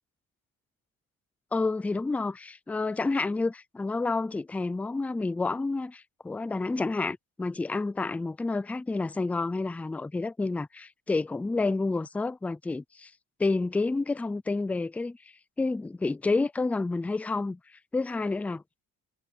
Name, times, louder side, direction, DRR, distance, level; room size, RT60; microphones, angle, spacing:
voice 1, 1.5-13.1 13.4-15.2 15.6-17.6 17.9-18.6, left 3 dB, 5° left, 0.3 m, -29 dB
cardioid pair, 165°, 33 cm